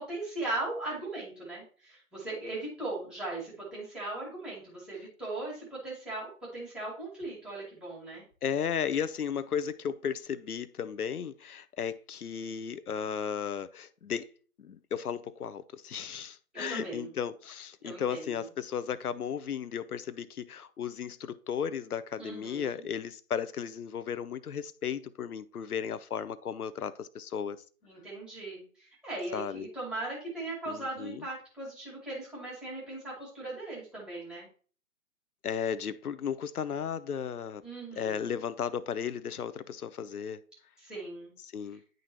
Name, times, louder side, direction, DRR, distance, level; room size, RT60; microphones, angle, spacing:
voice 1, 0.0-8.2 16.5-17.1 17.8-18.5 22.2-22.9 27.8-34.5 37.6-38.3 40.8-41.3 41.7-41.8, right 2 dB, ahead, 2.1 m, -39 dB
voice 2, 8.4-14.3 14.6-27.6 29.3-29.7 30.7-31.2 35.4-37.6 37.9-40.4 41.5-41.8, left 7 dB, 85° left, 0.7 m, -35 dB
10.5 x 3.8 x 2.9 m
figure-of-eight pair, 150°, 44 cm